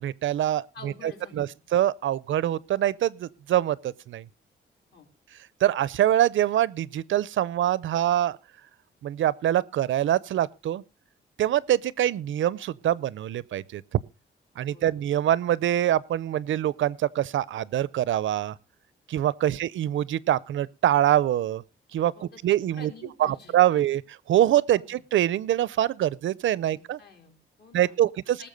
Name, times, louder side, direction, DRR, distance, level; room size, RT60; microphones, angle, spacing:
voice 1, 0.0-0.9 1.3-4.2 5.6-8.4 9.0-10.8 11.4-13.8 14.6-18.6 19.1-21.6 21.9-22.1 22.4-22.9 23.2-24.0 24.3-27.0 27.7-28.5, right 12 dB, 75° right, 0.5 m, -24 dB
voice 2, 0.7-1.5 4.9-5.1 14.7-14.9 19.4-19.6 22.1-23.5 24.7-25.0 26.7-28.1 28.4-28.5, left 4 dB, 55° left, 4.0 m, -49 dB
19.5 x 7.2 x 5.2 m
wide cardioid pair, 170°, 20 cm